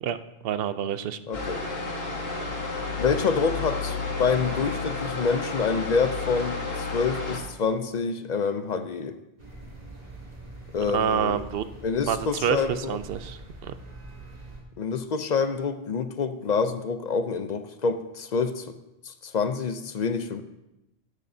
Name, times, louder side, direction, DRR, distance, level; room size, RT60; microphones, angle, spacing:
voice 1, 0.4-1.2 10.9-11.7 12.1-13.7, right 9 dB, 70° right, 12 dB, 0.8 m, -28 dB
sound 1, 1.3-7.4, left 3 dB, 75° left, 1.7 m, -31 dB
voice 2, 1.3-1.6 3.0-9.1 10.7-11.4 11.8-13.0 14.8-18.8 19.0-20.4, left 5 dB, 50° left, 10 dB, 0.6 m, -27 dB
sound 2, 9.4-14.6, right 2 dB, 40° right, 2.0 m, -44 dB
13.5 x 11.0 x 2.7 m, 0.92 s
omnidirectional pair, 1.1 m